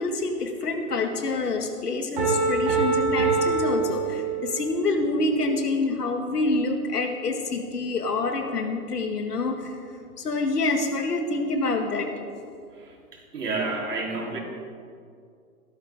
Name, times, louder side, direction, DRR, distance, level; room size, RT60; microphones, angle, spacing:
voice 1, 0.0-9.8 10.2-12.1, left 2 dB, 75° left, 5 dB, 2.0 m, -27 dB
Piano, 2.2-4.7, right 4 dB, 25° right, 2.8 m, -24 dB
voice 2, 13.1-14.4, right 3 dB, 80° right, -1 dB, 3.6 m, -29 dB
16.0 x 13.5 x 3.7 m, 2.3 s
hypercardioid pair, 180°, 47 cm